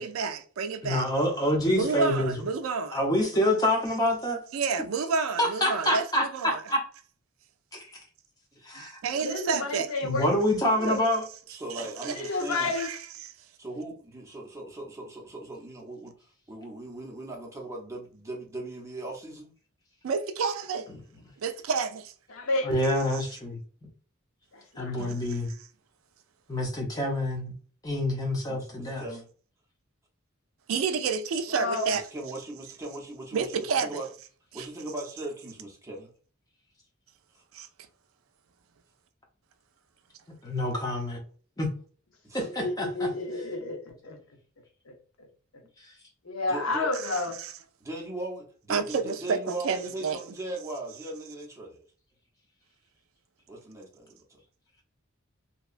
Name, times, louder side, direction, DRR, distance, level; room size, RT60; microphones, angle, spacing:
voice 1, 0.0-1.1 1.7-3.0 4.5-6.6 9.0-9.9 11.7-12.2 12.8-13.0 20.0-20.9 21.4-22.1 25.0-25.4 30.7-32.0 33.3-34.0 34.5-34.7 37.5-37.7 47.1-47.5 48.7-50.2, right 5 dB, 70° right, 0.3 m, -30 dB
voice 2, 0.8-2.3 2.9-4.4 5.4-6.8 7.7-7.8 8.6-9.0 10.0-11.2 22.6-23.6 24.8-25.5 26.5-27.5 27.8-29.0 40.4-41.2 41.6-41.7 42.3-43.1, left 1 dB, 20° left, 0.7 m, -27 dB
voice 3, 9.1-10.3 10.8-11.0 12.0-12.9 22.3-22.7 24.5-25.2 31.5-31.9 42.4-44.2 44.9-45.0 46.2-47.4, left 2 dB, 80° left, 0.6 m, -31 dB
voice 4, 11.5-12.7 13.6-16.1 16.5-19.5 28.5-29.3 31.9-34.1 34.5-36.1 37.3-37.4 42.2-42.5 46.5-46.9 47.8-51.8 53.5-54.4, right 1 dB, 15° right, 0.7 m, -39 dB
2.8 x 2.2 x 2.4 m
head